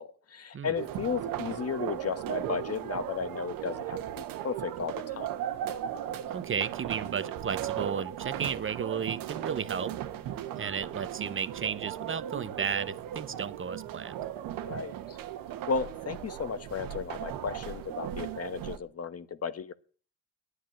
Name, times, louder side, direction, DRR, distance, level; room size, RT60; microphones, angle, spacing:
voice 1, 0.0-5.3 14.6-15.2 15.7-19.7, left 6 dB, 45° left, 1.3 m, -34 dB
sound 1, 0.8-18.8, right 11 dB, 85° right, 1.4 m, -37 dB
voice 2, 6.3-10.0 10.6-14.2, right 6 dB, 40° right, 1.0 m, -33 dB
10.0 x 9.7 x 7.5 m
supercardioid pair, 65°, 33 cm